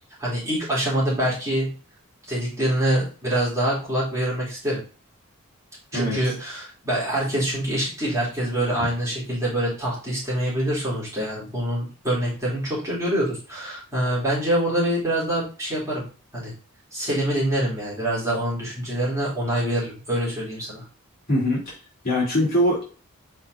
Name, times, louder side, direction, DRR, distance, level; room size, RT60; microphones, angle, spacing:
voice 1, 0.2-1.7 2.3-4.8 5.9-16.0 16.3-16.5 16.9-20.8, right 1 dB, 15° right, -8 dB, 3.3 m, -25 dB
voice 2, 21.3-21.8 22.0-22.9, equal, 45° left, -6 dB, 3.7 m, -22 dB
7.3 x 5.3 x 2.7 m, 0.36 s
head